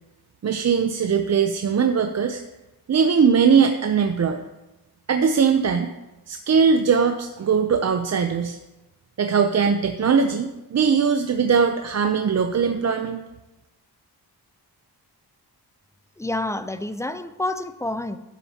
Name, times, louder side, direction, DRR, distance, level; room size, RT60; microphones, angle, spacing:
voice 1, 0.4-2.4 2.9-4.4 5.1-5.9 6.3-8.6 9.2-13.2, right 6 dB, 40° right, 6 dB, 0.6 m, -20 dB
voice 2, 16.2-18.2, left 2 dB, 10° left, 11 dB, 0.4 m, -28 dB
12.5 x 9.0 x 2.8 m, 1.0 s
wide cardioid pair, 105°, 39 cm